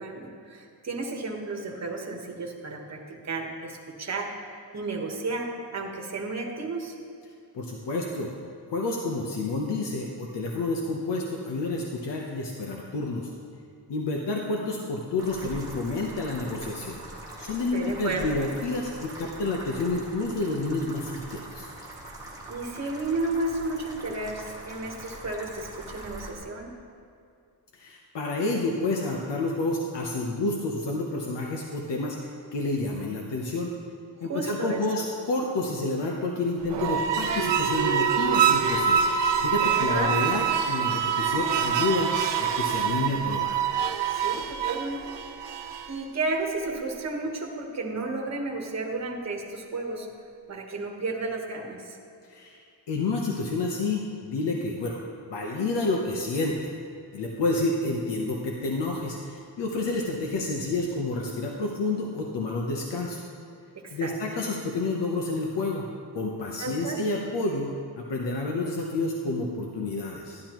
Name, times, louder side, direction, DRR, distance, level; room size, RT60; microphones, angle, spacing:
voice 1, 0.0-4.3 4.7-6.9 17.7-18.4 22.5-26.7 34.2-35.0 39.6-40.1 44.1-45.2 45.9-50.1 50.5-52.0 63.7-64.1 66.6-67.0, right 3 dB, 40° right, 1 dB, 1.3 m, -33 dB
voice 2, 7.5-8.3 8.7-13.3 13.9-17.0 17.4-21.7 27.7-33.7 34.2-39.0 39.4-42.1 42.4-43.6 52.2-52.6 52.9-55.0 55.3-56.7 57.1-63.2 63.9-65.8 66.1-67.7 68.0-70.4, left 2 dB, 80° left, -1 dB, 1.0 m, -29 dB
sound 1, 15.2-26.3, right 1 dB, 10° right, 1.9 m, -42 dB
sound 2, 36.6-46.0, right 7 dB, 80° right, 0.7 m, -25 dB
12.0 x 11.0 x 3.0 m, 2.5 s
wide cardioid pair, 125°, 41 cm